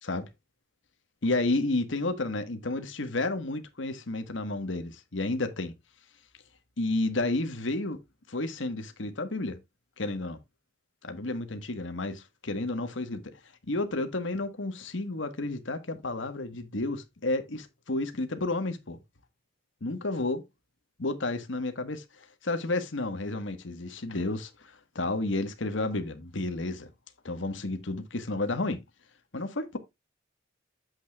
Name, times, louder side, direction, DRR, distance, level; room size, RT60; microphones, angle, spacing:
voice 1, 1.2-5.7 6.8-8.0 8.3-9.6 10.0-10.4 11.0-13.2 13.6-19.0 19.8-20.4 21.0-26.9 27.2-28.8 29.3-29.8, left 2 dB, 85° left, 1.3 m, -31 dB
9.3 x 7.9 x 2.3 m
head